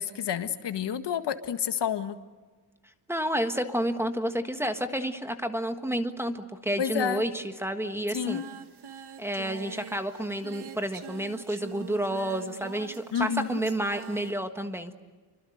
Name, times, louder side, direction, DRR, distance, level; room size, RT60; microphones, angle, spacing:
voice 1, 0.0-2.2 6.8-7.2 8.1-8.4 13.1-13.6, left 8 dB, 75° left, 9 dB, 1.8 m, -29 dB
voice 2, 3.1-8.4 9.2-14.9, right 1 dB, 5° right, 7 dB, 1.5 m, -30 dB
Singing, 8.1-14.3, right 8 dB, 70° right, 1.9 m, -44 dB
29.0 x 25.0 x 7.9 m, 1.4 s
wide cardioid pair, 175°, 41 cm